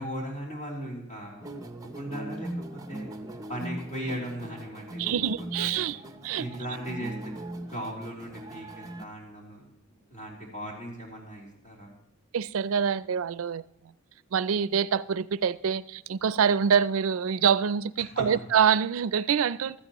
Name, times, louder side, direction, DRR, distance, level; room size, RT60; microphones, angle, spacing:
voice 1, 0.0-5.1 5.6-5.9 6.4-11.9 18.1-18.4, equal, 35° left, 3.4 m, -38 dB
sound 1, 1.4-9.0, right 1 dB, 15° right, 0.6 m, -40 dB
voice 2, 5.0-6.5 12.3-13.6 14.3-19.8, right 7 dB, 70° right, 0.4 m, -25 dB
15.5 x 13.5 x 3.0 m
head